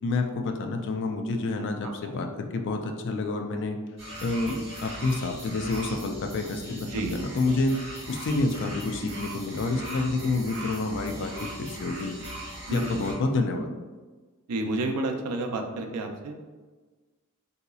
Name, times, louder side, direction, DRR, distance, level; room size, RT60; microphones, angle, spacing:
voice 1, 0.0-3.8 4.2-7.8 8.1-11.3 11.6-12.1 12.7-13.7, left 3 dB, 55° left, 4 dB, 0.4 m, -28 dB
sound 1, 4.0-13.1, right 1 dB, 25° right, 1.4 m, -40 dB
voice 2, 12.7-13.1 14.5-16.3, right 2 dB, 85° right, 4 dB, 0.5 m, -30 dB
3.8 x 2.8 x 2.3 m, 1.3 s
head